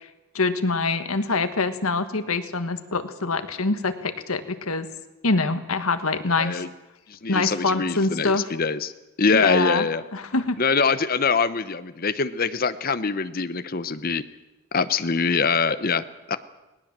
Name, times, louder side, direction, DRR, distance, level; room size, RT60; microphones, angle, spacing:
voice 1, 0.3-4.9 5.2-6.6 7.3-8.5 9.3-10.6, left 3 dB, 80° left, 10 dB, 1.5 m, -25 dB
voice 2, 6.3-6.7 7.1-8.9 9.2-10.0 10.6-14.2 14.7-16.4, left 5 dB, 40° left, 13 dB, 0.8 m, -24 dB
19.5 x 18.5 x 7.5 m, 1.0 s
head